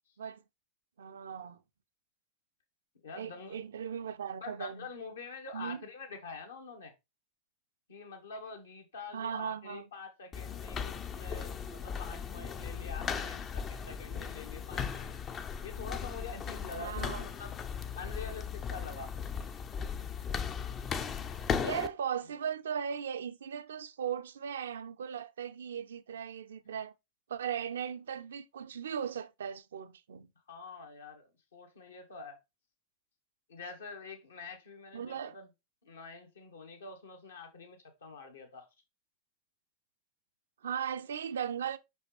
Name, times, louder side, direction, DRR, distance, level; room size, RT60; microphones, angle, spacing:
voice 1, 1.0-1.6 3.1-4.9 5.5-5.8 9.1-9.8 16.8-17.3 21.6-26.9 27.3-30.3 34.9-35.4 40.6-41.8, right 8 dB, 65° right, 0.5 m, -37 dB
voice 2, 3.0-3.6 4.4-6.9 7.9-15.1 15.6-17.5 18.0-19.1 30.5-32.4 33.5-35.5 35.8-38.7, left 4 dB, 70° left, 1.8 m, -46 dB
sound 1, 10.3-21.9, left 6 dB, 25° left, 0.6 m, -37 dB
5.9 x 5.3 x 3.1 m
figure-of-eight pair, 90°, 0 cm